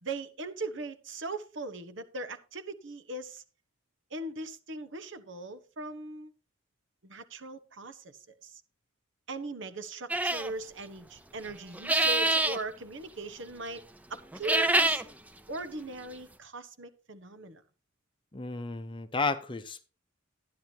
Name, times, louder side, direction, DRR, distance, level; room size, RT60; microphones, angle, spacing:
voice 1, 0.0-3.4 4.1-6.3 7.0-8.6 9.3-13.8 14.1-15.0 15.5-17.6, right 2 dB, 65° right, 11 dB, 1.2 m, -39 dB
sound 1, 10.1-10.5 11.7-12.6 14.3-15.0, right 2 dB, 10° right, 0.6 m, -25 dB
voice 2, 18.3-19.9, left 3 dB, 25° left, 10 dB, 0.7 m, -32 dB
12.0 x 10.5 x 2.9 m, 0.33 s
head